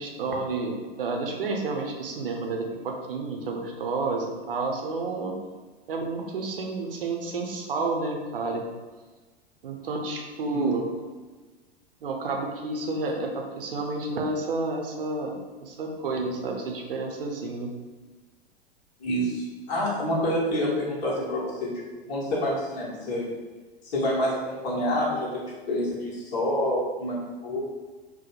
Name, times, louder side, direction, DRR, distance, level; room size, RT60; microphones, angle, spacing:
voice 1, 0.0-5.3 5.9-8.7 9.6-10.9 12.0-17.8, right 3 dB, 65° right, 2 dB, 0.7 m, -30 dB
voice 2, 19.0-21.8 22.1-23.3 23.8-27.6, equal, 45° left, -5 dB, 1.1 m, -28 dB
3.0 x 2.1 x 4.2 m, 1.3 s
figure-of-eight pair, 90°, 30 cm